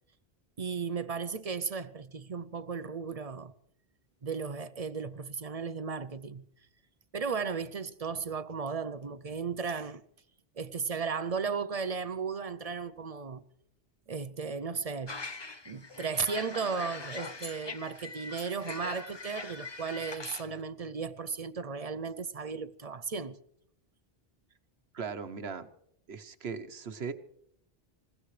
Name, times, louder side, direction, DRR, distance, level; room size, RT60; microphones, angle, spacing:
voice 1, 0.6-3.5 4.2-6.5 7.1-10.0 10.6-13.4 14.1-15.2 15.7-23.4, right 5 dB, 40° right, 0.7 m, -35 dB
sound 1, 15.1-20.5, left 3 dB, 30° left, 0.8 m, -42 dB
voice 2, 24.9-25.7 26.1-27.1, right 5 dB, 85° right, 1.3 m, -38 dB
26.5 x 16.5 x 3.3 m
omnidirectional pair, 1.0 m